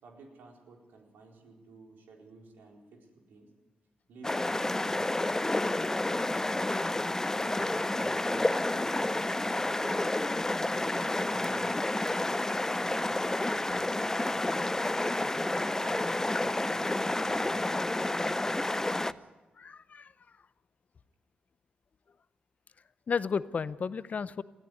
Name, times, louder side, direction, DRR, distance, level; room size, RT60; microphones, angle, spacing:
voice 1, 0.0-3.5 4.1-10.0 10.7-15.0 15.6-19.3, right 3 dB, 85° right, 1 dB, 4.3 m, -54 dB
sound 1, 4.2-19.1, left 2 dB, 15° left, 0.7 m, -30 dB
voice 2, 19.6-20.4 23.1-24.4, left 5 dB, 50° left, 16 dB, 0.7 m, -33 dB
20.5 x 14.0 x 9.7 m, 1.2 s
cardioid pair, 60°, 3 cm